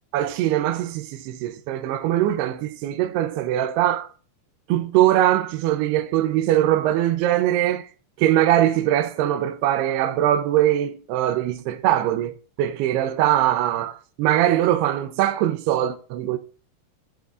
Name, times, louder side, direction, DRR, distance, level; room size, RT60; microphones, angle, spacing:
voice 1, 0.1-4.1 4.7-7.9 8.2-16.4, right 12 dB, 85° right, 2.7 m, -21 dB
19.0 x 7.6 x 2.5 m
omnidirectional pair, 4.6 m